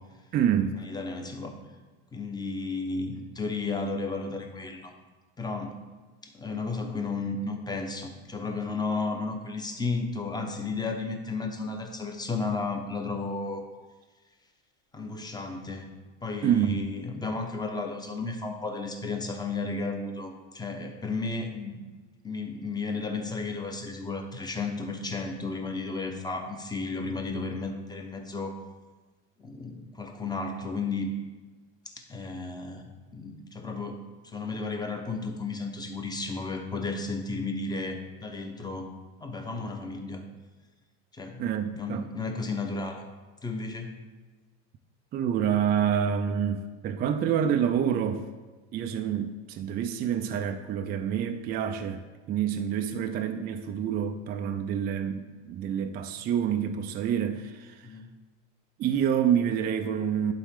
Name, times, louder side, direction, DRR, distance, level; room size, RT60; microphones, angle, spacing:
voice 1, 0.3-0.7 16.4-16.8 41.4-42.0 45.1-48.2 48.7-57.9 58.8-60.3, right 8 dB, 25° right, 6 dB, 0.3 m, -27 dB
voice 2, 0.8-1.5 2.1-4.9 5.4-5.7 6.2-13.6 14.9-15.9 16.2-21.8 22.2-28.6 29.4-31.1 31.9-38.9 39.2-40.2 41.1-41.4 41.7-43.0 43.4-43.9 57.8-58.1, left 3 dB, 10° left, 4 dB, 0.8 m, -33 dB
11.0 x 3.8 x 3.6 m, 1.3 s
supercardioid pair, 120°, 37 cm